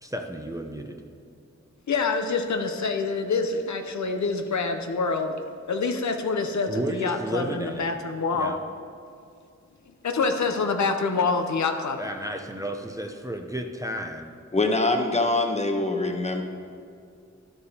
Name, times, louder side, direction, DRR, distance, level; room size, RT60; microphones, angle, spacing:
voice 1, 0.0-1.0 6.7-7.9 8.3-8.6 12.0-14.3, right 1 dB, 10° right, 3 dB, 0.6 m, -32 dB
voice 2, 1.9-5.3 5.7-8.6 10.0-12.0, left 4 dB, 75° left, 5 dB, 0.6 m, -26 dB
voice 3, 14.5-16.4, left 2 dB, 25° left, 4 dB, 0.8 m, -24 dB
11.0 x 6.8 x 2.8 m, 2.4 s
wide cardioid pair, 60°, 29 cm